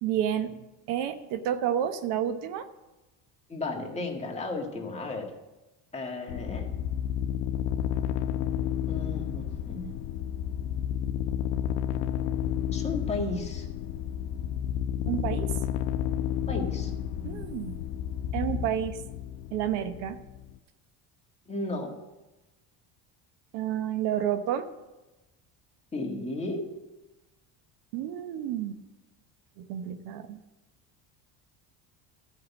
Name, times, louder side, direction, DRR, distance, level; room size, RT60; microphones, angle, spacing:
voice 1, 0.0-0.6 0.9-2.7 15.1-15.6 17.2-17.8 18.3-19.0 19.5-20.2 23.5-24.7 27.9-28.8 29.6-30.4, right 10 dB, 80° right, 10 dB, 1.0 m, -30 dB
voice 2, 3.5-5.3 5.9-6.7 8.9-10.0 12.7-13.7 16.5-16.9 17.2-17.4 21.5-21.9 25.9-26.7, left 2 dB, 15° left, 0 dB, 1.8 m, -34 dB
sound 1, 6.3-20.5, left 10 dB, 85° left, 0.8 m, -31 dB
12.5 x 5.8 x 8.2 m, 1.0 s
cardioid pair, 135°, 41 cm